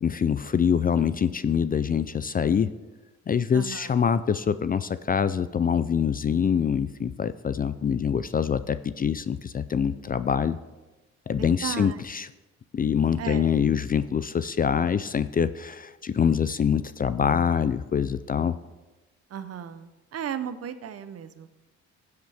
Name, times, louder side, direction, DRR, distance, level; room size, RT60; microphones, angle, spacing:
voice 1, 0.0-2.7 3.3-10.6 11.3-12.3 12.7-18.6, left 7 dB, 30° left, 14 dB, 0.4 m, -25 dB
voice 2, 3.5-3.9 11.4-12.0 13.2-13.5 19.3-21.5, right 8 dB, 50° right, 11 dB, 0.8 m, -35 dB
16.0 x 8.0 x 3.5 m, 1.1 s
cardioid pair, 90°, 30 cm